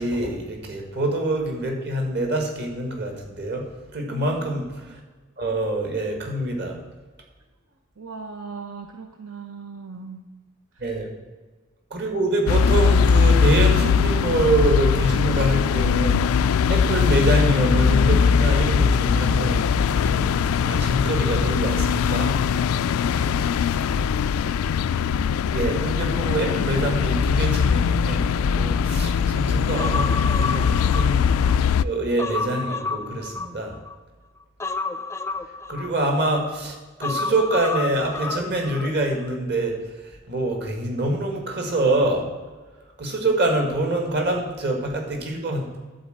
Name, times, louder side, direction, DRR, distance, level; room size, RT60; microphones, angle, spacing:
voice 1, 0.0-3.7 3.9-5.0 5.4-6.8 10.8-11.1 11.9-22.4 25.5-31.4 31.8-33.8 35.7-42.3 43.0-45.7, right 2 dB, 50° right, 2 dB, 1.9 m, -25 dB
voice 2, 4.1-4.6 8.0-10.3 10.7-10.9 23.0-23.6 29.7-30.1, right 4 dB, 80° right, 4 dB, 0.8 m, -39 dB
sound 1, 12.5-31.8, left 6 dB, 85° left, 0.3 m, -20 dB
Human voice, 29.8-31.6 31.9-34.0 34.6-36.4 37.0-38.9 39.2-39.4, left 4 dB, 15° left, 0.4 m, -30 dB
11.5 x 4.4 x 7.9 m, 1.3 s
head